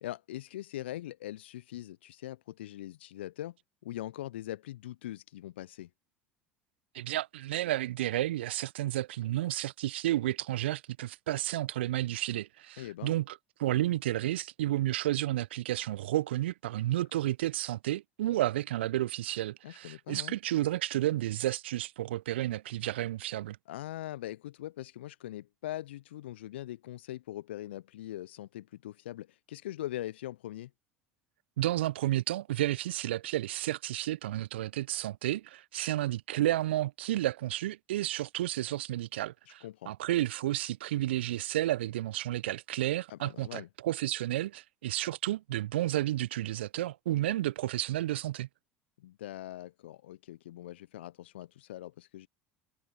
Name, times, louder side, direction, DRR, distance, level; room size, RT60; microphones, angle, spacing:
voice 1, 0.0-3.6 3.8-5.9 12.8-13.2 19.6-20.4 23.7-30.7 39.6-39.9 43.1-43.7 49.0-52.3, left 14 dB, 70° left, 0.9 m, -42 dB
voice 2, 6.9-23.6 31.6-48.5, right 14 dB, 70° right, 1.3 m, -31 dB
figure-of-eight pair, 70°, 6 cm